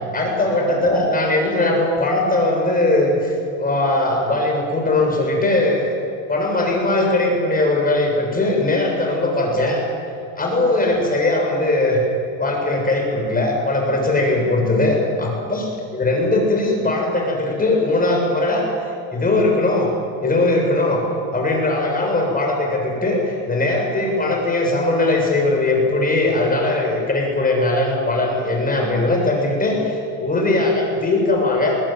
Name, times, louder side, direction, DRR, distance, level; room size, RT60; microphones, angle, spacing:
voice 1, 0.1-5.9 6.3-9.8 10.4-12.0 12.4-18.6 19.1-19.9 20.2-21.0 21.3-31.8, left 2 dB, 20° left, 1 dB, 7.0 m, -19 dB
22.0 x 18.5 x 9.1 m, 2.6 s
supercardioid pair, 120°, 44 cm